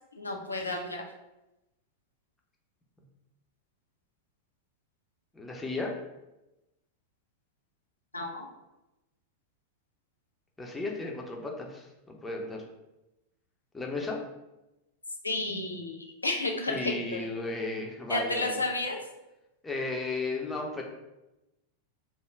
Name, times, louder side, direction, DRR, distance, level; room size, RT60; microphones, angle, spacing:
voice 1, 0.2-1.0 8.1-8.5 15.2-17.3 18.1-19.0, left 2 dB, 80° left, 1 dB, 0.5 m, -31 dB
voice 2, 5.3-5.9 10.6-12.6 13.7-14.2 16.7-18.6 19.6-20.8, left 3 dB, 10° left, 0 dB, 0.6 m, -34 dB
3.6 x 2.1 x 3.3 m, 0.97 s
figure-of-eight pair, 90°, 0 cm